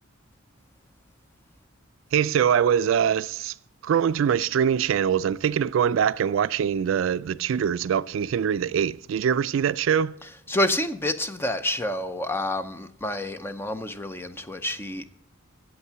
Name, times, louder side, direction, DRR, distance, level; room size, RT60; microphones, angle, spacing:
voice 1, 2.1-3.5 3.8-10.1, right 8 dB, 70° right, 0.3 m, -23 dB
voice 2, 10.5-15.0, left 1 dB, 10° left, 0.5 m, -28 dB
8.3 x 8.0 x 6.8 m
head